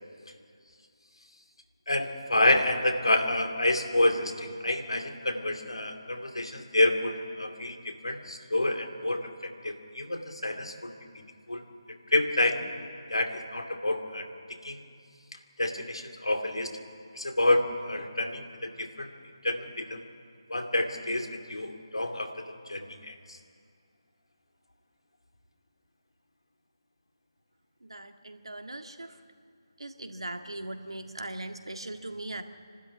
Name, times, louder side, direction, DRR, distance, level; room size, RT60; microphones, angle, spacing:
voice 1, 1.9-11.2 11.5-11.6 12.1-12.6 13.1-14.3 14.6-14.8 15.6-16.7 17.1-19.1 19.4-20.0 20.5-23.4, left 1 dB, 85° left, 6 dB, 2.7 m, -28 dB
voice 2, 27.8-29.2 29.8-32.4, right 1 dB, 80° right, 5 dB, 1.8 m, -39 dB
26.5 x 12.5 x 9.8 m, 2.3 s
figure-of-eight pair, 155°, 3 cm